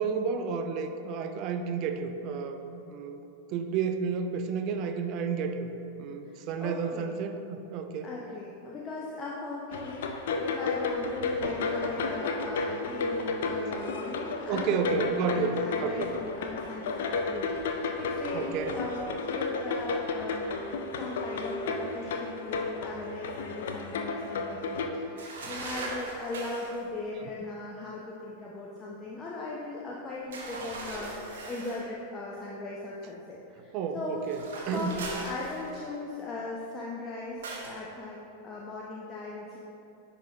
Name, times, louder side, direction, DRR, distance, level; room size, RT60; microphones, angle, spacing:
voice 1, 0.0-3.2 3.5-8.1 14.5-16.1 18.3-18.8 33.7-35.0, right 5 dB, 40° right, 7 dB, 0.5 m, -31 dB
voice 2, 6.2-7.2 8.0-34.2 34.7-38.2 38.4-39.6, left 2 dB, 20° left, -5 dB, 0.7 m, -39 dB
sound 1, 9.7-24.9, left 4 dB, 55° left, 0.5 m, -32 dB
sound 2, 25.2-26.8 30.3-31.9 34.2-36.0 37.4-37.8, right 2 dB, 60° right, 1.0 m, -39 dB
10.0 x 4.2 x 2.8 m, 2.9 s
figure-of-eight pair, 90°, 0 cm